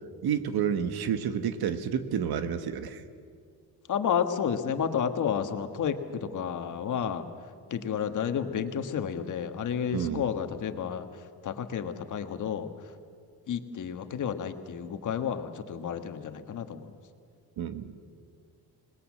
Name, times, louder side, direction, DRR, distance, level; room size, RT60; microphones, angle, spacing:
voice 1, 0.2-3.0 9.9-10.3 17.6-17.9, right 8 dB, 80° right, 10 dB, 1.5 m, -30 dB
voice 2, 3.9-7.3 7.7-11.1 11.4-12.7 13.5-16.9, left 7 dB, 50° left, 7 dB, 1.5 m, -31 dB
27.0 x 20.0 x 7.5 m, 2.1 s
cardioid pair, 170°, 37 cm